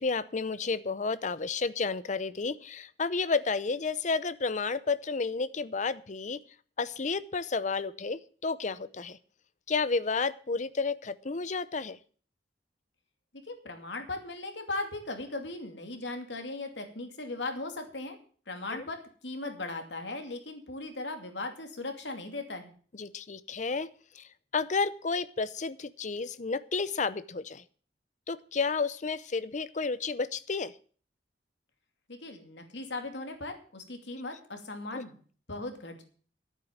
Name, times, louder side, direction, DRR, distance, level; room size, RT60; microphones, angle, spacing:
voice 1, 0.0-6.4 6.8-9.2 9.7-12.0 18.7-18.8 23.0-23.9 24.2-24.3 24.5-27.6 28.3-30.7 34.9-35.0, left 4 dB, 45° left, 16 dB, 0.7 m, -31 dB
voice 2, 13.5-18.2 18.5-22.7 32.1-35.2 35.5-36.0, left 2 dB, 90° left, 5 dB, 2.6 m, -38 dB
11.5 x 9.1 x 7.2 m, 0.43 s
head